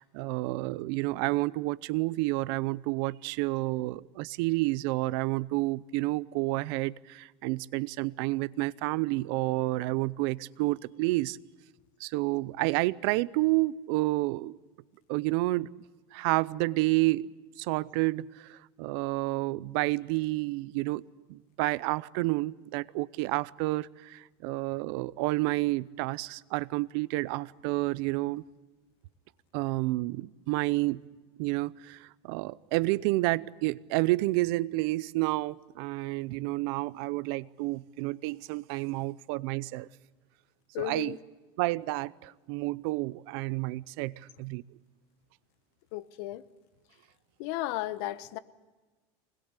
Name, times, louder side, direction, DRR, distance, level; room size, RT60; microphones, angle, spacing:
voice 1, 0.0-11.4 12.0-14.6 15.1-15.7 16.1-17.3 17.6-21.0 21.3-28.4 29.5-31.1 31.4-39.9 40.8-41.2 41.6-44.6, right 20 dB, 70° right, 20 dB, 0.7 m, -30 dB
voice 2, 40.7-41.2 45.9-46.4 47.4-48.4, left 16 dB, 70° left, 15 dB, 1.2 m, -34 dB
24.5 x 20.5 x 8.3 m, 1.2 s
supercardioid pair, 145°, 14 cm